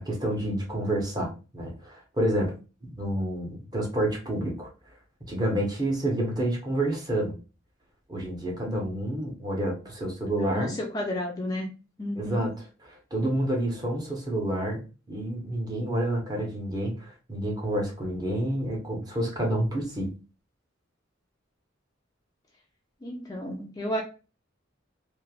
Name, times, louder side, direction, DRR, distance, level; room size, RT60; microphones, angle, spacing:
voice 1, 0.0-2.5 2.8-4.7 5.3-7.3 8.1-10.7 12.2-12.5 13.1-20.1, right 1 dB, 20° right, 0.8 m, -29 dB
voice 2, 10.4-11.7 12.0-12.6 23.0-24.0, left 1 dB, 20° left, 0.4 m, -32 dB
3.1 x 2.0 x 2.3 m
head